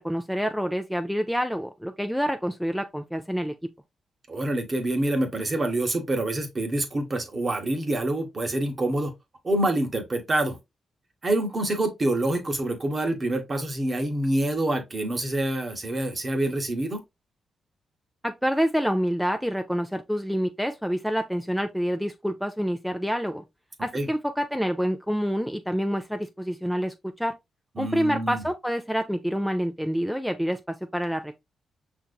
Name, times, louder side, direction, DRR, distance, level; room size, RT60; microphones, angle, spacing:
voice 1, 0.0-3.5 18.2-23.4 23.8-27.3 27.8-31.3, equal, ahead, 0.5 m, -27 dB
voice 2, 4.3-9.1 9.4-10.6 11.2-17.0 23.9-24.1 27.8-28.4, right 1 dB, 40° right, 1.0 m, -26 dB
5.6 x 2.6 x 2.2 m
cardioid pair, 60°, 0 cm